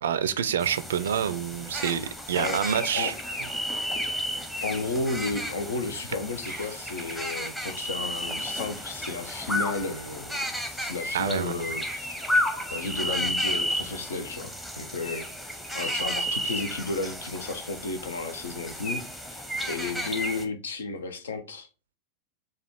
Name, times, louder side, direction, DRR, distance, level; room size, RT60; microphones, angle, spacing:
voice 1, 0.0-3.1 11.1-11.6, right 8 dB, 65° right, 0.4 m, -27 dB
sound 1, 0.6-20.4, equal, 5° left, 0.8 m, -32 dB
voice 2, 2.3-3.1 4.6-10.3 10.7-12.2 12.7-15.3 15.7-21.7, left 3 dB, 70° left, 0.7 m, -33 dB
5.0 x 2.4 x 4.4 m
figure-of-eight pair, 90°, 0 cm